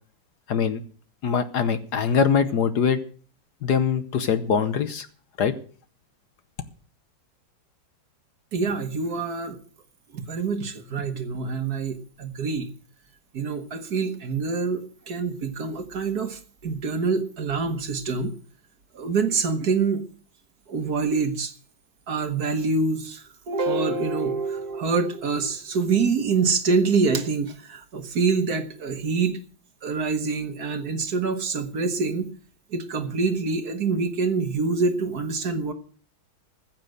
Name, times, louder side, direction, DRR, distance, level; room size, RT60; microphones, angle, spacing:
voice 1, 0.5-0.8 1.2-3.0 3.6-5.1 5.4-5.5, left 6 dB, 60° left, 11 dB, 1.3 m, -22 dB
voice 2, 8.5-9.6 10.1-12.7 13.3-18.3 18.9-20.1 20.7-21.5 22.1-29.4 29.8-32.3 32.7-35.7, right 4 dB, 55° right, 8 dB, 1.6 m, -26 dB
15.0 x 7.6 x 7.7 m, 0.43 s
omnidirectional pair, 2.2 m